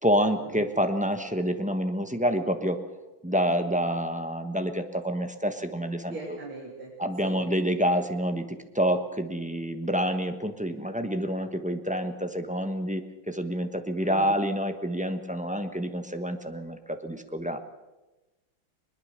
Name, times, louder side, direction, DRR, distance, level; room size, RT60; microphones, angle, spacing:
voice 1, 0.0-2.8 3.2-6.4 7.0-17.6, equal, 5° right, 6 dB, 0.8 m, -28 dB
voice 2, 6.1-6.9 7.2-7.4 14.0-14.3, right 3 dB, 90° right, -4 dB, 3.9 m, -40 dB
21.0 x 21.0 x 6.7 m, 1.1 s
omnidirectional pair, 2.2 m